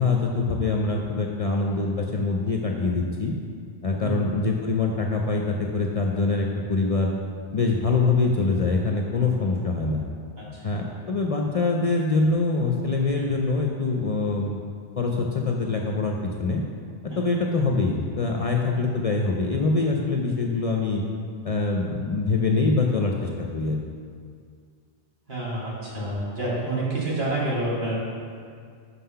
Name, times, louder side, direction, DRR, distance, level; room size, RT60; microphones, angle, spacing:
voice 1, 0.0-3.3 3.8-7.1 7.5-10.0 10.6-14.6 15.0-16.6 17.2-21.0 21.4-23.8, left 3 dB, 45° left, 0 dB, 0.5 m, -24 dB
voice 2, 25.3-28.0, right 2 dB, 70° right, -6 dB, 2.1 m, -28 dB
5.8 x 5.7 x 5.6 m, 2.1 s
omnidirectional pair, 1.1 m